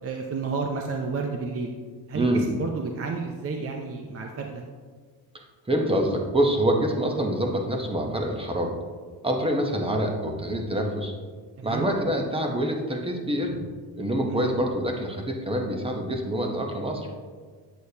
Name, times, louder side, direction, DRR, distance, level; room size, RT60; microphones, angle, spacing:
voice 1, 0.0-1.7 2.1-4.6 11.6-11.9 14.3-14.5, right 4 dB, 35° right, 3 dB, 0.6 m, -31 dB
voice 2, 5.7-8.7 9.2-11.1 11.6-13.6 14.0-17.1, right 1 dB, 15° right, 2 dB, 0.9 m, -26 dB
8.3 x 6.4 x 2.8 m, 1.6 s
cardioid pair, 105°, 40 cm